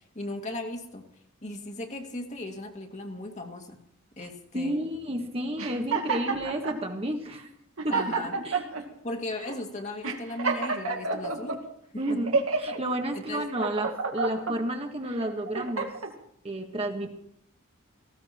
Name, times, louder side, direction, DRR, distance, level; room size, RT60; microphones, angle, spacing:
voice 1, 0.1-1.0 1.4-3.8 4.2-4.7 7.9-8.3 9.0-11.6 12.1-12.2 13.1-13.4, left 2 dB, 35° left, 3 dB, 2.2 m, -36 dB
voice 2, 4.2-7.5 7.8-8.0 8.4-8.6 12.0-15.9 16.4-17.1, right 1 dB, 30° right, 4 dB, 1.6 m, -31 dB
sound 1, 5.6-6.8 7.4-7.5 7.8-8.8 9.4-9.6 10.0-11.6 12.1-12.8 13.3-14.6 15.1-16.1, right 4 dB, 85° right, 2.4 m, -29 dB
18.5 x 16.5 x 4.5 m, 0.73 s
head